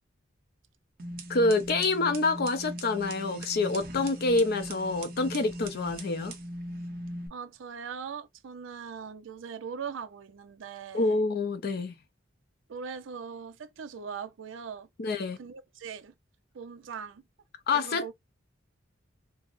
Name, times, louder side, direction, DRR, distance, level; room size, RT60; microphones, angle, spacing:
sound 1, 1.0-7.3, right 1 dB, 50° right, 0.8 m, -39 dB
voice 1, 1.3-6.3 10.9-11.9 15.0-15.4 17.7-18.1, left 3 dB, 50° left, 0.5 m, -27 dB
voice 2, 7.3-11.2 12.7-14.9 15.4-16.1 16.5-17.2 17.7-18.1, right 6 dB, 70° right, 0.4 m, -40 dB
4.7 x 2.0 x 2.4 m
head